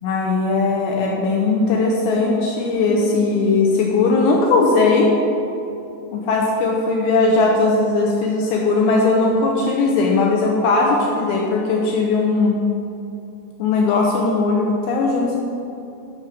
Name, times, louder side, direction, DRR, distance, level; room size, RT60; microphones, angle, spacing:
voice 1, 0.0-5.1 6.1-12.6 13.6-15.4, left 3 dB, 80° left, -1 dB, 2.7 m, -18 dB
Piano, 2.9-6.3, equal, 90° right, 3.6 m, -37 dB
11.5 x 6.2 x 5.0 m, 2.7 s
omnidirectional pair, 5.7 m